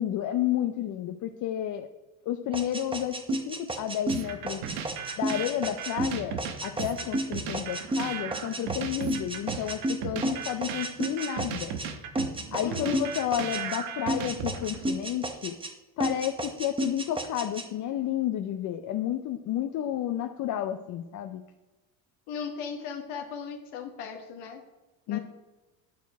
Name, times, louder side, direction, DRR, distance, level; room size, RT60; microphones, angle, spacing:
voice 1, 0.0-1.9 2.3-4.7 5.2-6.4 6.6-11.7 12.5-15.6 16.0-21.4 25.1-25.2, left 11 dB, 50° left, 8 dB, 0.5 m, -31 dB
sound 1, 2.5-11.9 12.2-13.8 14.1-15.7 16.0-17.7, right 1 dB, 15° right, 0.8 m, -32 dB
sound 2, 4.1-14.9, right 7 dB, 85° right, 1.1 m, -36 dB
voice 2, 12.6-13.0 22.3-24.6 25.1-25.2, left 5 dB, 75° left, 4 dB, 1.1 m, -37 dB
9.3 x 4.6 x 4.7 m, 1.2 s
supercardioid pair, 100°, 41 cm